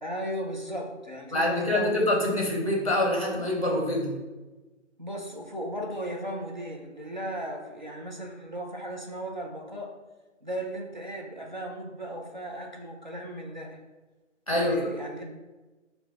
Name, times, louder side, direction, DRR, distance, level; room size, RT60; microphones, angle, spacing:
voice 1, 0.0-1.9 5.0-9.9 10.4-13.8 14.5-15.2, right 1 dB, 40° right, 0 dB, 0.5 m, -36 dB
voice 2, 1.3-4.1 14.5-14.8, left 1 dB, 30° left, -1 dB, 0.7 m, -25 dB
4.2 x 2.3 x 4.6 m, 1.2 s
hypercardioid pair, 180°, 37 cm